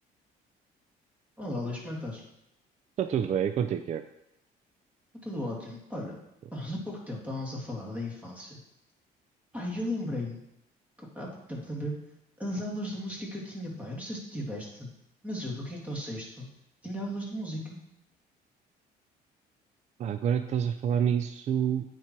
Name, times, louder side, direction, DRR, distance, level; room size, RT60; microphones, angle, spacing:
voice 1, 1.4-2.2 5.2-6.2 6.5-8.6 9.5-10.4 11.0-12.0 12.4-14.9 15.2-16.5 16.8-17.8, left 1 dB, 10° right, -3 dB, 2.4 m, -36 dB
voice 2, 3.0-4.0 20.0-21.8, right 8 dB, 45° right, 9 dB, 0.4 m, -27 dB
9.2 x 4.5 x 4.6 m, 0.81 s
cardioid pair, 110°, 17 cm